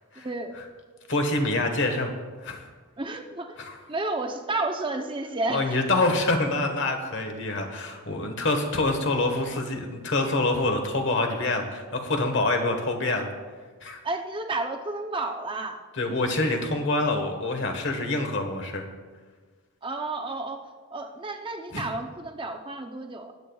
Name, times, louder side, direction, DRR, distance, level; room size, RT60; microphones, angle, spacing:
voice 1, 0.2-0.6 3.0-3.6 3.9-5.8 14.0-15.8 19.8-23.3, right 2 dB, 20° right, 4 dB, 0.6 m, -31 dB
voice 2, 1.1-2.1 2.4-2.7 3.6-3.7 5.5-13.3 13.8-14.0 16.0-18.8 21.7-21.8, left 2 dB, 55° left, 4 dB, 1.3 m, -26 dB
20.5 x 8.7 x 2.3 m, 1.5 s
head